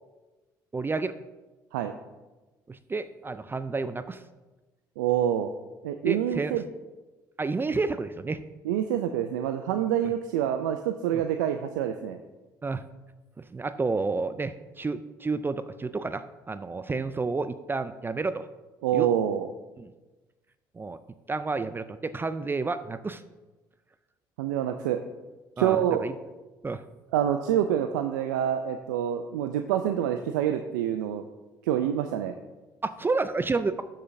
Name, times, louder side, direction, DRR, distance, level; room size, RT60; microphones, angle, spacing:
voice 1, 0.7-1.1 2.7-4.2 6.0-6.6 7.4-8.4 12.6-12.9 13.5-18.5 18.9-19.1 19.8-19.9 20.7-21.0 21.3-23.2 25.6-26.1 26.6-26.8 32.8-33.8, right 3 dB, 20° right, 12 dB, 0.4 m, -30 dB
voice 2, 5.0-5.5 5.8-6.6 8.6-12.2 18.8-19.5 24.4-25.0 25.6-26.0 27.1-31.2 31.6-32.3, right 10 dB, 80° right, 7 dB, 0.4 m, -26 dB
13.0 x 6.4 x 2.7 m, 1.2 s
hypercardioid pair, 55°, 10 cm